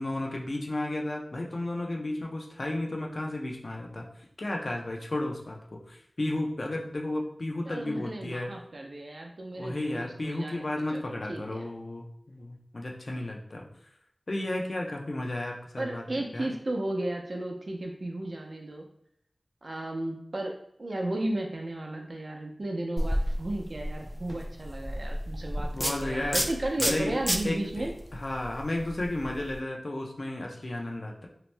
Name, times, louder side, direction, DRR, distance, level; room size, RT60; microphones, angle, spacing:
voice 1, 0.0-4.1 4.4-8.5 9.5-13.6 14.3-16.0 16.3-16.5 25.7-26.5 26.8-31.3, left 1 dB, 65° left, 0 dB, 0.5 m, -33 dB
voice 2, 7.7-11.7 15.8-18.9 19.6-20.5 20.8-27.9, right 1 dB, 65° right, 1 dB, 0.5 m, -34 dB
sound 1, 23.0-29.6, equal, 5° right, 0.3 m, -32 dB
2.8 x 2.0 x 3.2 m, 0.72 s
wide cardioid pair, 45°, 0 cm